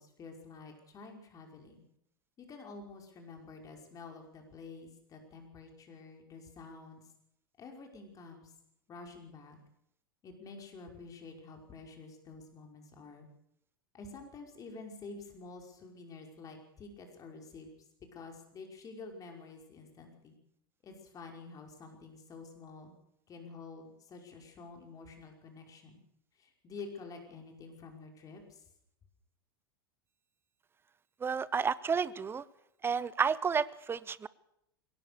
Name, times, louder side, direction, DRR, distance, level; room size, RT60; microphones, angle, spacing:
voice 1, 0.0-1.8 2.4-7.0 7.6-8.5 8.9-9.6 10.2-13.3 13.9-17.7 18.1-20.4 20.8-22.9 23.3-26.0 26.3-28.7, left 4 dB, 30° left, 3 dB, 5.4 m, -49 dB
voice 2, 31.2-32.4 32.8-34.3, right 6 dB, 20° right, 19 dB, 0.8 m, -31 dB
22.0 x 18.0 x 6.7 m, 0.78 s
figure-of-eight pair, 85°, 12 cm